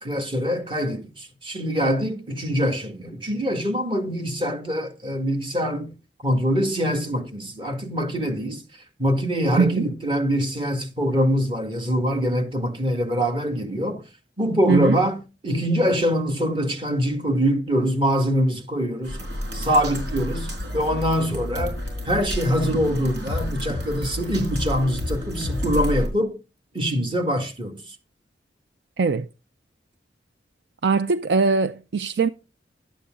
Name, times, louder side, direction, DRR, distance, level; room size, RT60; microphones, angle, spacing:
voice 1, 0.0-5.9 6.2-8.6 9.0-14.0 14.4-15.2 15.4-19.2 19.5-21.8 22.1-26.4 26.7-28.0, equal, 30° right, 1.9 m, -24 dB
voice 2, 9.6-9.9 14.7-15.0 29.0-29.3 30.8-32.3, right 4 dB, 65° right, 0.5 m, -21 dB
sound 1, 19.0-26.1, left 1 dB, 80° right, 4.7 m, -30 dB
12.0 x 8.5 x 3.8 m
head